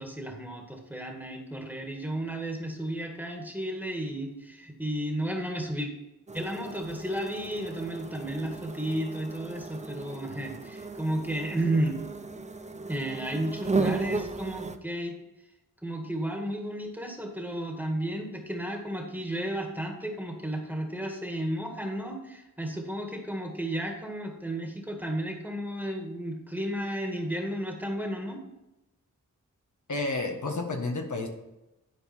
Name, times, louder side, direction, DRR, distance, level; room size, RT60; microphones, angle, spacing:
voice 1, 0.0-5.9 6.3-12.0 12.9-15.2 15.8-28.4, right 1 dB, 5° right, 2 dB, 2.0 m, -33 dB
sound 1, 6.3-14.8, right 3 dB, 20° right, 0.7 m, -35 dB
voice 2, 29.9-31.3, left 2 dB, 65° left, 2 dB, 1.4 m, -30 dB
11.0 x 4.6 x 4.4 m, 0.95 s
cardioid pair, 45°, 32 cm